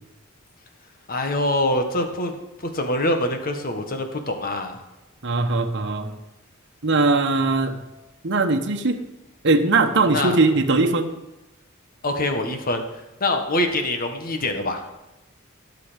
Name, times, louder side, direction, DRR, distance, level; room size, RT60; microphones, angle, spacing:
voice 1, 1.1-2.3 2.7-4.8 10.1-10.4 12.0-12.8 13.2-14.8, left 1 dB, 45° left, 5 dB, 1.7 m, -24 dB
voice 2, 5.2-6.1 6.8-7.8 8.2-9.0 9.4-11.1, right 3 dB, 60° right, 5 dB, 1.2 m, -20 dB
17.0 x 6.9 x 5.3 m, 1.0 s
head